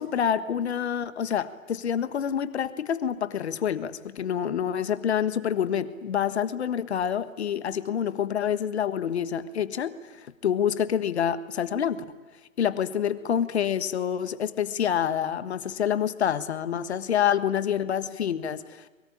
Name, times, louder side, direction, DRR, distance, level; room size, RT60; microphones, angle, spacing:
voice 1, 0.0-10.0 10.4-12.0 12.6-18.9, left 9 dB, 50° left, 13 dB, 1.5 m, -27 dB
23.0 x 23.0 x 8.8 m, 1.2 s
figure-of-eight pair, 130°, 41 cm